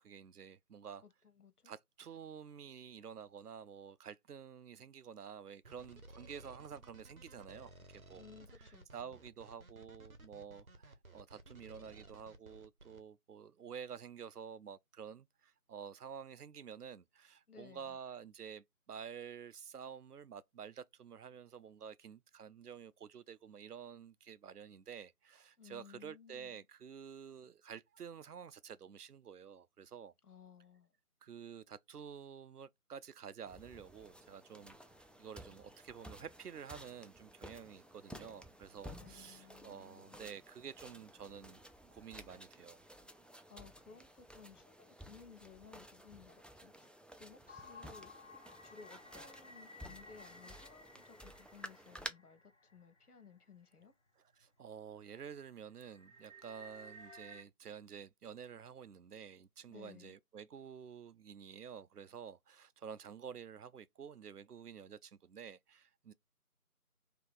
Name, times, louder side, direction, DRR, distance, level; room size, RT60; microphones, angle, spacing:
voice 1, 0.0-1.0 1.6-8.2 8.5-30.1 31.2-34.8 35.2-41.6 41.9-42.8 54.2-66.1, right 7 dB, 85° right, 0.6 m, -50 dB
voice 2, 1.0-1.7 8.2-9.2 17.5-18.0 25.6-26.6 30.2-30.9 34.6-34.7 39.0-40.3 43.5-48.3 48.6-53.9 59.7-60.1, left 6 dB, 80° left, 0.9 m, -58 dB
sound 1, 5.6-13.0, right 2 dB, 70° right, 1.1 m, -56 dB
sound 2, 33.5-52.1, equal, 5° left, 0.3 m, -54 dB
sound 3, 47.5-53.2 53.8-53.9 54.4-54.6 55.0-57.4, left 1 dB, 50° left, 1.2 m, -56 dB
3.4 x 2.8 x 3.8 m
figure-of-eight pair, 175°, 45 cm